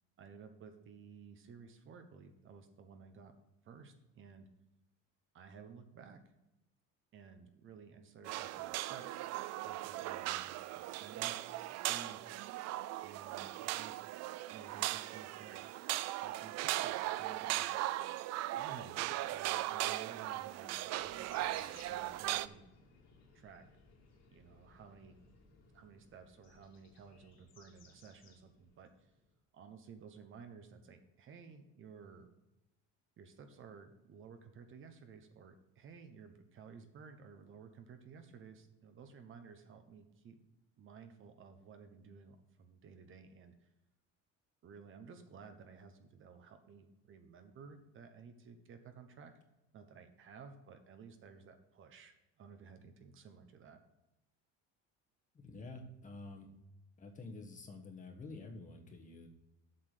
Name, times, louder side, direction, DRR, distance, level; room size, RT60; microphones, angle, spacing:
voice 1, 0.2-3.3 3.6-4.5 5.3-6.2 7.1-12.6 13.0-14.0 14.5-15.6 16.1-17.7 18.5-22.6 23.3-23.6 24.3-25.2 25.7-29.1 29.5-32.3 33.2-40.3 40.8-43.7 44.6-49.3 49.7-53.8, right 6 dB, 40° right, 7 dB, 1.0 m, -55 dB
sound 1, 8.3-22.5, right 15 dB, 55° right, 0.4 m, -38 dB
sound 2, 20.9-29.4, left 4 dB, 55° left, 2.4 m, -63 dB
voice 2, 55.3-56.5 57.0-59.3, left 3 dB, 25° left, 3 dB, 1.2 m, -49 dB
7.8 x 6.0 x 6.6 m, 0.96 s
cardioid pair, 155°, 31 cm